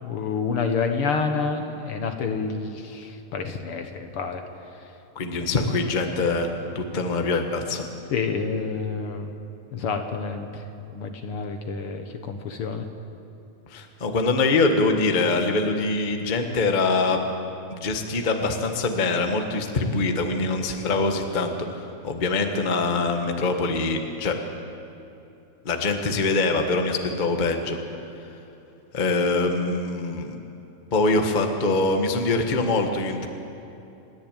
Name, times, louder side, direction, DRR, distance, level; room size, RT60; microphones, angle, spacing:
voice 1, 0.0-4.4 8.1-9.3 9.7-10.6 10.9-12.8, left 5 dB, 60° left, 6 dB, 1.7 m, -28 dB
voice 2, 5.1-6.5 6.7-7.9 13.7-17.2 17.7-24.4 25.6-27.8 28.9-30.4 30.9-33.3, left 3 dB, 40° left, 4 dB, 0.6 m, -24 dB
29.0 x 10.5 x 9.1 m, 2.8 s
omnidirectional pair, 3.4 m